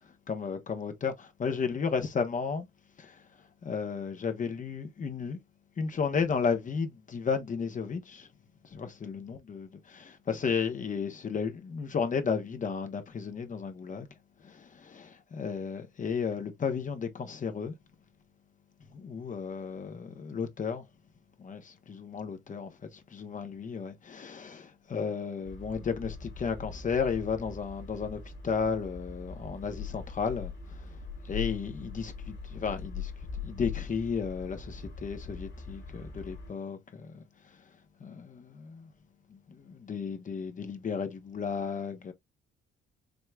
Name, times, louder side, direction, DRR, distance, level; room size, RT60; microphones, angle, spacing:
voice 1, 0.3-2.7 3.0-3.2 3.6-5.4 5.8-8.3 8.7-14.1 14.4-17.7 18.9-20.8 21.4-31.0 31.2-33.1 33.4-37.1 38.0-38.9 39.5-42.1, left 6 dB, 40° left, 0.9 m, -33 dB
sound 1, 25.4-36.5, left 5 dB, 55° left, 2.1 m, -41 dB
5.2 x 3.1 x 2.3 m
cardioid pair, 90°, 20 cm